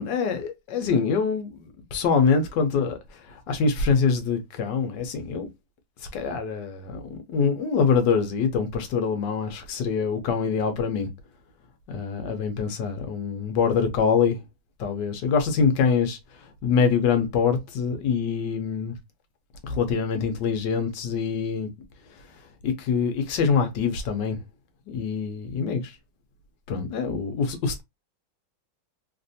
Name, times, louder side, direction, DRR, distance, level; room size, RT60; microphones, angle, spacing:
voice 1, 0.0-1.6 1.9-5.5 6.1-11.1 11.9-14.4 14.8-16.2 16.6-18.9 19.6-21.7 22.6-24.4 24.9-25.9 26.7-27.8, left 5 dB, 70° left, 1.3 m, -24 dB
3.3 x 2.5 x 2.6 m
omnidirectional pair, 2.1 m